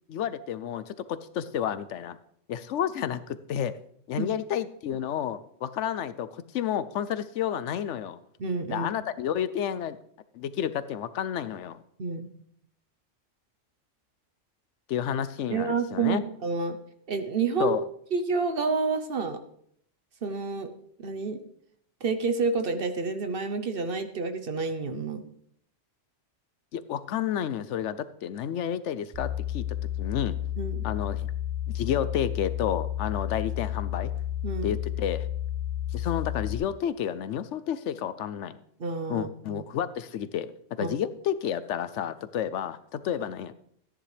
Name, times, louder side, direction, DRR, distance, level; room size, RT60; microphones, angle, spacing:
voice 1, 0.1-2.2 2.5-3.8 4.1-8.2 8.7-10.0 10.3-11.8 14.9-16.2 17.6-17.8 26.7-29.6 30.0-30.4 30.8-31.3 31.7-34.1 34.6-35.3 35.9-38.6 39.1-40.5 40.8-43.5, left 9 dB, 75° left, 14 dB, 0.9 m, -30 dB
voice 2, 8.4-8.9 12.0-12.3 15.5-16.8 17.1-17.8 18.1-19.4 20.2-20.7 21.0-21.4 22.0-25.3 30.6-30.8 34.4-34.7 38.8-39.6 40.8-41.0, right 4 dB, 50° right, 9 dB, 1.0 m, -29 dB
sound 1, 29.1-36.6, left 11 dB, 35° right, 2.1 m, -31 dB
14.0 x 10.0 x 3.3 m, 0.68 s
omnidirectional pair, 1.3 m